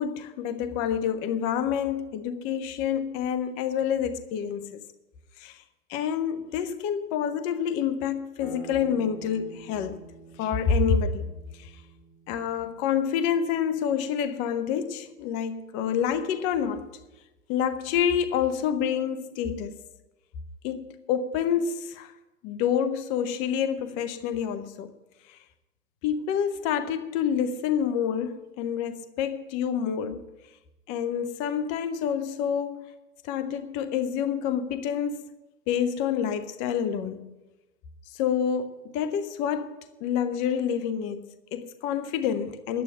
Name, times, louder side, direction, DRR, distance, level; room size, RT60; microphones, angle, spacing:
voice 1, 0.0-4.8 5.4-5.6 5.9-10.0 10.4-11.3 11.6-11.7 12.3-16.9 17.5-19.8 20.6-22.1 22.4-24.9 25.3-25.4 26.0-30.3 30.9-32.8 33.2-35.3 35.7-37.3 38.1-42.8, left 8 dB, 15° left, 0.5 m, -28 dB
sound 1, 8.4-13.8, right 2 dB, 40° left, 2.8 m, -48 dB
11.0 x 9.3 x 8.8 m
hypercardioid pair, 125°, 46 cm